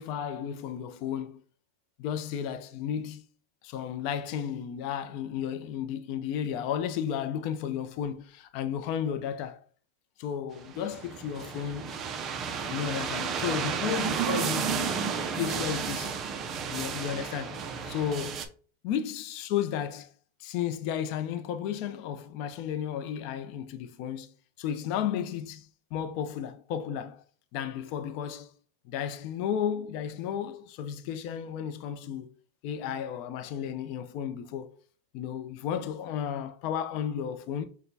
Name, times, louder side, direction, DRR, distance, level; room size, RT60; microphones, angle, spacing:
voice 1, 0.0-1.4 2.0-3.2 3.6-9.6 10.2-12.0 12.7-15.0 15.3-16.2 16.7-18.5 18.8-20.1 20.4-24.3 24.6-27.2 27.5-28.5 28.9-32.3 32.6-34.7 35.1-37.6, left 9 dB, 45° left, 0.5 m, -33 dB
sound 1, 10.6-18.5, right 6 dB, 25° right, 0.5 m, -32 dB
6.0 x 2.2 x 2.7 m
supercardioid pair, 150°, 0 cm